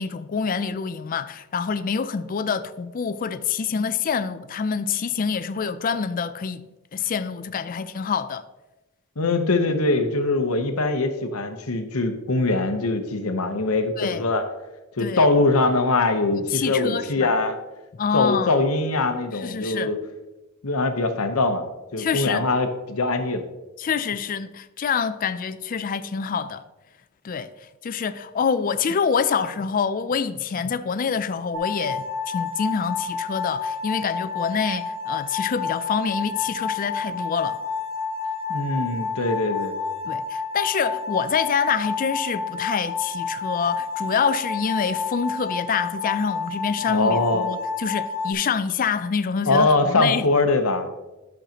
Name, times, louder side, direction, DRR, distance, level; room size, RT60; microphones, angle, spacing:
voice 1, 0.0-6.6 6.9-8.4 14.0-14.2 15.0-15.3 16.3-17.3 18.0-18.6 19.3-19.9 22.0-22.5 23.8-26.6 27.2-27.5 27.8-37.6 40.0-50.2, left 6 dB, 40° left, 0.4 m, -26 dB
voice 2, 9.2-14.4 15.0-17.6 18.1-20.0 20.6-21.7 21.9-23.4 38.5-39.8 46.9-47.5 49.5-50.9, left 2 dB, 85° left, 1.0 m, -22 dB
sound 1, 31.5-48.3, left 5 dB, 90° right, 1.6 m, -30 dB
12.0 x 6.5 x 2.9 m
head